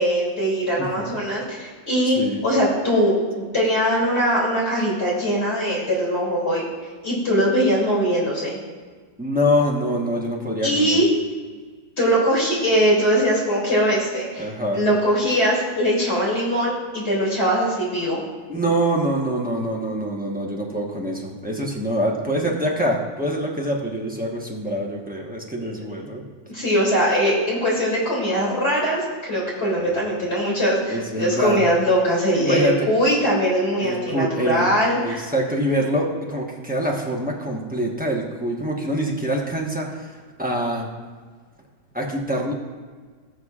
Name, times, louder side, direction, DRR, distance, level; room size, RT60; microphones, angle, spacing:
voice 1, 0.0-6.6 7.0-8.6 10.6-11.1 12.0-14.5 14.7-18.2 25.6-25.7 26.5-35.3, equal, 35° left, -5 dB, 3.0 m, -21 dB
voice 2, 0.8-1.2 2.1-2.4 9.2-11.0 14.4-14.9 18.1-18.2 18.5-26.3 29.8-29.9 30.9-31.6 32.4-32.9 33.8-34.6 35.0-40.9 41.9-42.5, equal, 10° right, -2 dB, 0.6 m, -25 dB
19.0 x 6.5 x 2.4 m, 1.5 s
omnidirectional pair, 2.1 m